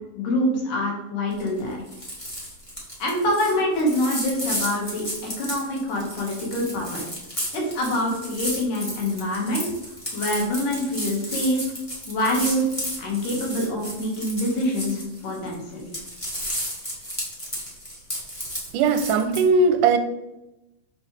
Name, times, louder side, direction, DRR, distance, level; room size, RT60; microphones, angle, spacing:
voice 1, 0.1-1.8 3.0-7.0 7.5-9.6 10.1-11.6 12.1-12.7 13.0-15.9, left 1 dB, 80° left, -1 dB, 3.3 m, -25 dB
sound 1, 1.3-1.6 1.9-15.5 15.8-19.4, equal, 35° left, 0.4 m, -33 dB
voice 2, 18.7-20.0, right 4 dB, 90° right, 7 dB, 2.2 m, -19 dB
6.2 x 5.3 x 3.3 m, 0.94 s
omnidirectional pair, 3.7 m